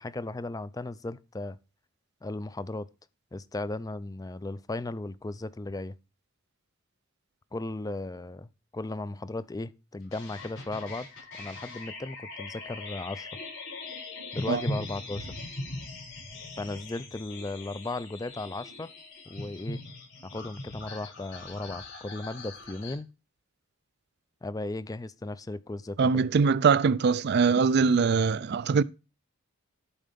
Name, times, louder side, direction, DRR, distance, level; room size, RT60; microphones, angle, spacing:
voice 1, 0.0-1.6 2.2-2.9 3.3-6.0 7.5-11.1 11.4-13.3 14.3-15.4 16.6-18.9 19.3-19.8 20.2-23.1 24.4-26.1, left 2 dB, 15° left, 0.4 m, -36 dB
sound 1, 10.1-22.9, left 2 dB, 60° left, 6.1 m, -40 dB
voice 2, 26.0-28.8, right 5 dB, 50° right, 0.4 m, -22 dB
11.5 x 4.7 x 5.1 m
head